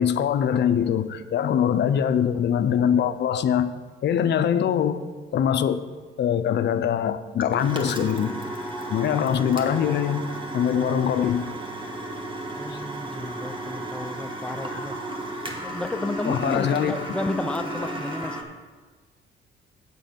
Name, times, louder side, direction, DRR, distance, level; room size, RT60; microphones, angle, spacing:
voice 1, 0.0-3.7 4.0-5.0 5.3-5.8 6.2-8.3 8.9-10.3 10.5-11.5 12.7-12.8 14.7-14.8 16.3-17.0, left 9 dB, 60° left, 10 dB, 0.6 m, -23 dB
sound 1, 7.4-18.4, right 1 dB, 25° right, 1.4 m, -33 dB
voice 2, 12.6-15.0 15.6-18.4, left 2 dB, 5° left, 8 dB, 0.5 m, -32 dB
8.2 x 7.6 x 5.2 m, 1.4 s
cardioid pair, 90°, 20 cm